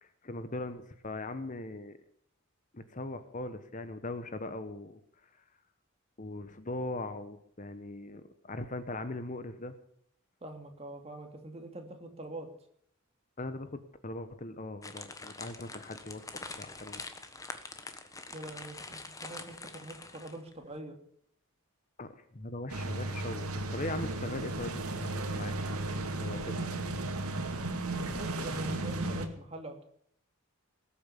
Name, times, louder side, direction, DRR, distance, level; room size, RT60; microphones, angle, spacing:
voice 1, 0.0-2.0 2.7-5.0 6.2-9.7 13.4-16.2 16.6-17.0 22.0-25.6 26.2-26.7, left 2 dB, 35° left, 11 dB, 1.1 m, -40 dB
voice 2, 10.4-12.5 18.3-21.0 28.1-29.8, right 2 dB, 30° right, 5 dB, 2.5 m, -44 dB
sound 1, 14.8-20.5, left 3 dB, 15° left, 1.3 m, -45 dB
sound 2, 22.7-29.3, right 2 dB, 90° right, 2.3 m, -35 dB
20.0 x 8.7 x 7.0 m, 0.67 s
head